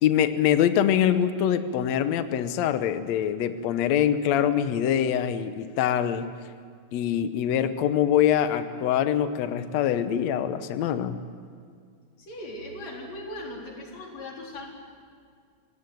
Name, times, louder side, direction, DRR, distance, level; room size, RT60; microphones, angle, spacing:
voice 1, 0.0-6.3 6.9-11.2, left 9 dB, 85° left, 10 dB, 1.5 m, -24 dB
voice 2, 12.2-14.7, left 1 dB, 45° left, -1 dB, 5.0 m, -38 dB
26.0 x 17.5 x 9.3 m, 2.1 s
omnidirectional pair, 4.4 m